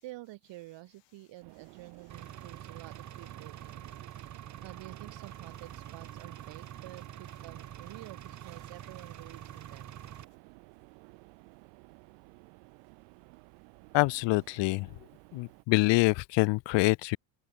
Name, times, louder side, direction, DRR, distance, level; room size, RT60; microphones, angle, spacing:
voice 1, 0.0-3.8 4.3-10.0, right 18 dB, 60° right, 6.5 m, -49 dB
sound 1, 1.4-15.6, right 40 dB or more, 90° right, 4.8 m, -55 dB
Engine, 2.1-10.2, right 11 dB, 35° right, 1.5 m, -46 dB
voice 2, 13.9-14.9 15.3-17.2, left 24 dB, 65° left, 0.8 m, -25 dB
open air
cardioid pair, 130°, 48 cm